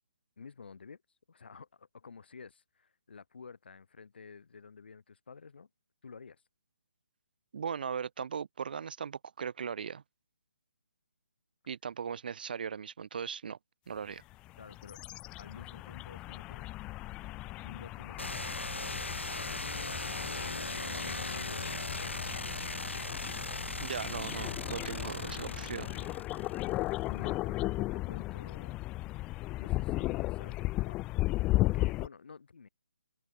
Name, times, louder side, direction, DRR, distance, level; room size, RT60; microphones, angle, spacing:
voice 1, 0.4-1.0 1.3-5.7 6.0-6.4 14.6-15.0 15.4-16.7 17.6-21.5 21.9-22.2 22.8-23.5 26.7-28.8 29.6-31.0 31.5-32.7, left 5 dB, 60° left, 3.2 m, -51 dB
voice 2, 7.5-10.0 11.7-13.6 13.9-14.2 23.8-25.9, right 7 dB, 50° right, 0.4 m, -38 dB
sound 1, 14.3-32.1, left 19 dB, 15° left, 0.5 m, -36 dB
sound 2, 18.2-26.9, left 2 dB, 90° left, 0.9 m, -38 dB
figure-of-eight pair, 145°, 6 cm